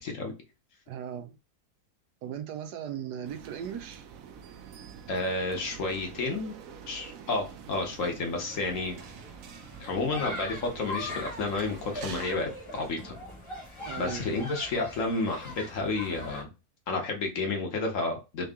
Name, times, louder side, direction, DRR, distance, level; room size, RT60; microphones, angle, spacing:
voice 1, 0.0-0.3 5.1-6.5 6.9-8.9 9.8-13.1 14.0-16.5 16.9-18.5, left 3 dB, 60° left, 1.2 m, -31 dB
voice 2, 0.9-1.4 2.2-4.0 13.9-14.5, right 9 dB, 90° right, 1.2 m, -38 dB
sound 1, 3.2-12.3, right 7 dB, 65° right, 1.0 m, -47 dB
sound 2, 8.5-16.4, left 1 dB, 20° left, 1.0 m, -41 dB
3.7 x 2.9 x 3.5 m
omnidirectional pair, 1.7 m